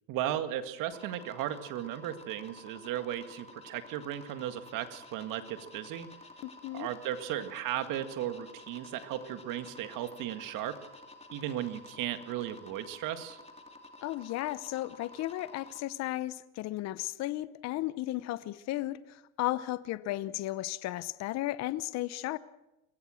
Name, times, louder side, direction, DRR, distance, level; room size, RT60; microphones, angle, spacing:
voice 1, 0.1-6.1 6.7-10.8 11.3-13.4, right 11 dB, 50° right, 9 dB, 2.0 m, -36 dB
sound 1, 0.9-15.8, left 2 dB, 15° left, 2.6 m, -52 dB
voice 2, 6.4-6.9 14.0-22.4, left 16 dB, 40° left, 16 dB, 0.8 m, -34 dB
23.5 x 18.0 x 6.4 m, 0.91 s
supercardioid pair, 125°, 40 cm